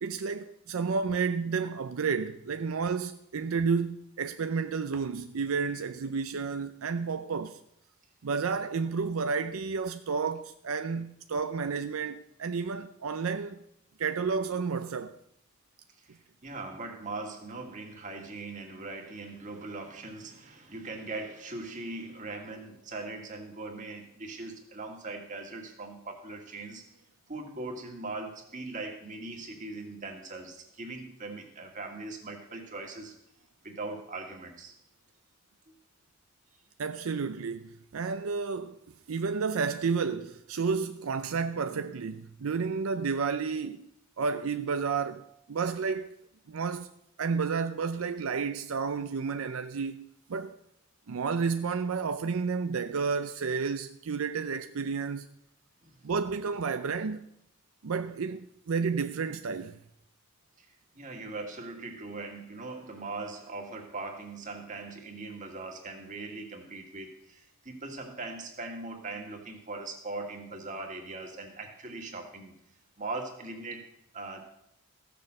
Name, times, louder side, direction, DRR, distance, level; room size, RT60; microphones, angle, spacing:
voice 1, 0.0-7.6 8.2-13.6 14.0-15.2 36.8-38.8 39.1-43.9 44.2-46.1 46.5-46.9 47.2-50.6 51.1-55.3 56.0-57.3 57.8-59.8, right 5 dB, 75° right, 0.5 m, -31 dB
voice 2, 15.9-26.9 27.3-33.2 33.6-34.7 35.7-35.8 55.8-56.1 60.6-72.5 73.0-74.4, right 3 dB, 35° right, 2.0 m, -40 dB
15.0 x 6.9 x 6.4 m
head